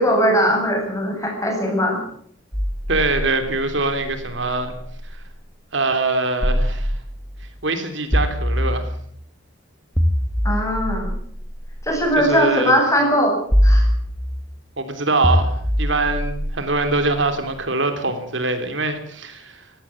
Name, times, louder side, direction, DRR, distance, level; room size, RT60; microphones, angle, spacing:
voice 1, 0.0-2.0 10.4-11.1 11.8-13.4 13.6-13.9, equal, 15° left, 1 dB, 7.9 m, -19 dB
sound 1, 2.5-5.3 6.4-7.5 8.1-9.2 10.0-12.2 13.5-14.6 15.2-17.4, equal, ahead, 1.9 m, -23 dB
voice 2, 2.9-4.7 5.1-5.2 5.7-6.9 7.6-8.9 12.2-12.8 14.8-19.6, right 3 dB, 70° right, 8 dB, 3.2 m, -23 dB
19.0 x 16.0 x 8.7 m, 0.64 s
head